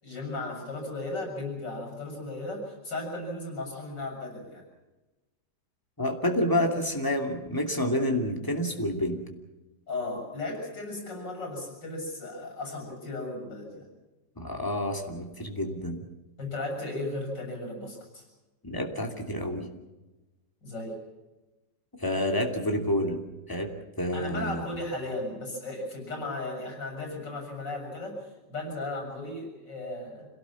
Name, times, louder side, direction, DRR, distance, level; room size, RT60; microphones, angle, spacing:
voice 1, 0.0-4.6 9.9-13.9 16.4-18.3 20.6-21.0 24.1-30.3, left 2 dB, 90° left, 2 dB, 7.9 m, -36 dB
voice 2, 6.0-9.2 14.4-16.0 18.6-19.6 22.0-23.2 23.5-23.7 24.0-24.6, left 1 dB, 10° left, 3 dB, 2.8 m, -28 dB
26.5 x 18.0 x 7.3 m, 1.1 s
omnidirectional pair, 1.9 m